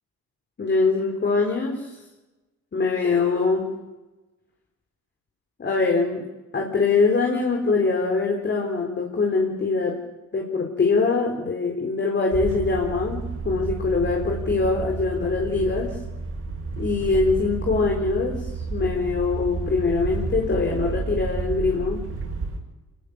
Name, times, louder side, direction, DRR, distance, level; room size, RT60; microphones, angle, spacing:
voice 1, 0.6-2.0 2.7-3.7 5.6-6.3 6.5-10.0 10.3-16.0 16.8-22.1, left 4 dB, 35° left, 1 dB, 4.0 m, -23 dB
sound 1, 12.3-22.6, right 3 dB, 50° right, 6.8 m, -31 dB
26.0 x 20.5 x 6.7 m, 1.1 s
cardioid pair, 90°, 30 cm